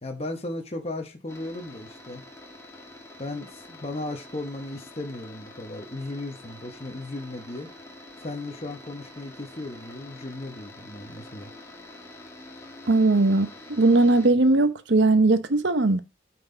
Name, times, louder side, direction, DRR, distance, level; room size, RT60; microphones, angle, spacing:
voice 1, 0.0-2.2 3.2-7.7 8.2-11.5, left 2 dB, 35° left, 1.0 m, -36 dB
sound 1, 1.3-14.3, left 2 dB, 15° left, 1.8 m, -46 dB
voice 2, 12.9-16.0, right 2 dB, 75° right, 0.8 m, -19 dB
8.9 x 4.4 x 3.9 m
head